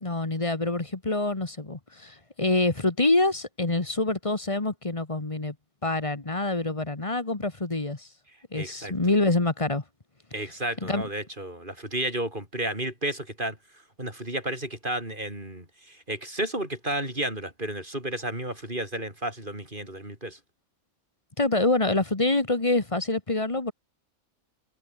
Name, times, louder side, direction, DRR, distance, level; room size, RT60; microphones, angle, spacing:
voice 1, 0.0-5.5 5.8-8.1 8.5-9.8 10.8-11.1 21.4-23.7, left 2 dB, 25° left, 1.6 m, -26 dB
voice 2, 8.5-8.9 10.3-13.6 14.0-20.4, right 1 dB, 35° right, 7.3 m, -32 dB
omnidirectional pair, 1.5 m